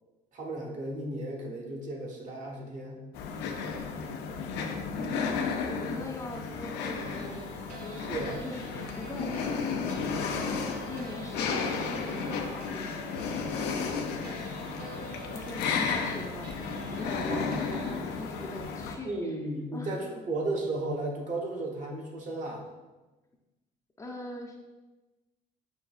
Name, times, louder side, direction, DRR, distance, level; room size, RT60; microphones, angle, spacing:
voice 1, 0.3-3.0 8.0-8.4 17.3-17.6 19.0-22.7, right 2 dB, 45° right, 0 dB, 0.9 m, -34 dB
sound 1, 3.1-18.9, left 5 dB, 85° left, 0.5 m, -33 dB
voice 2, 5.0-7.5 7.8-8.1 8.4-13.3 15.3-16.5 16.9-19.3 19.7-19.9 24.0-24.8, left 1 dB, 20° left, 0 dB, 0.4 m, -41 dB
sound 2, 6.8-18.0, right 3 dB, 70° right, 0.6 m, -45 dB
5.9 x 2.7 x 2.3 m, 1.2 s
cardioid pair, 110°, 17 cm